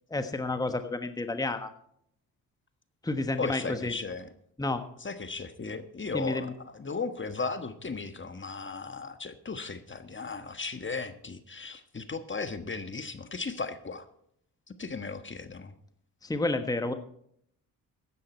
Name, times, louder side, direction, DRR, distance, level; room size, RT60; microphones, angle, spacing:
voice 1, 0.1-1.7 3.0-3.9 4.6-4.8 6.1-6.5 16.2-16.9, left 2 dB, 10° left, 8 dB, 1.2 m, -30 dB
voice 2, 3.4-4.3 5.0-14.1 14.8-15.7, left 4 dB, 25° left, 10 dB, 1.3 m, -36 dB
15.5 x 10.5 x 4.4 m, 0.69 s
supercardioid pair, 65°, 42 cm